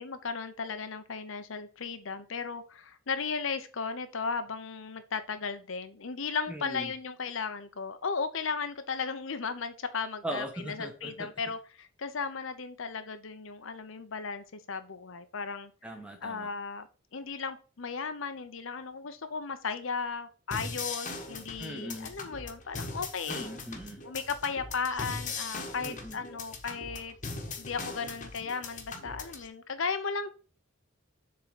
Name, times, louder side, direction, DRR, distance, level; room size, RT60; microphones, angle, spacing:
voice 1, 0.0-15.7 16.2-16.9 17.1-23.5 24.0-27.1 27.6-30.3, left 5 dB, 70° left, 0.8 m, -35 dB
voice 2, 6.5-6.9 10.2-11.1 15.8-16.5 21.6-22.1 23.3-24.0 25.8-26.2, right 1 dB, 5° right, 1.2 m, -39 dB
sound 1, 20.5-29.5, left 4 dB, 35° left, 1.2 m, -40 dB
6.9 x 3.8 x 5.9 m
head